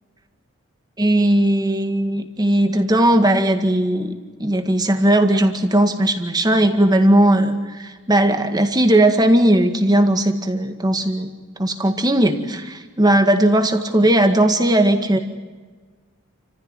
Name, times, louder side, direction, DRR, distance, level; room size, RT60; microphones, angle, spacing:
voice 1, 1.0-4.1 4.4-11.3 11.6-15.2, right 1 dB, 20° right, 6 dB, 2.0 m, -17 dB
30.0 x 15.0 x 9.1 m, 1.4 s
head